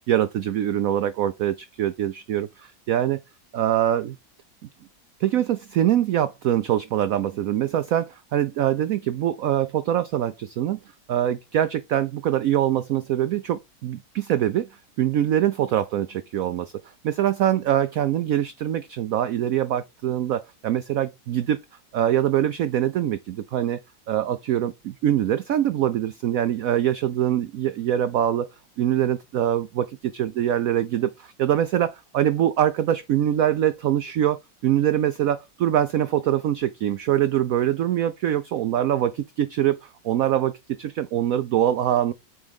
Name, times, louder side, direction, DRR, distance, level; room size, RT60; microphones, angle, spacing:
voice 1, 0.1-3.2 3.5-4.2 5.2-10.8 11.1-14.7 15.0-16.7 17.0-21.6 21.9-42.1, right 11 dB, 75° right, 0.7 m, -24 dB
8.0 x 3.7 x 3.5 m
omnidirectional pair, 2.0 m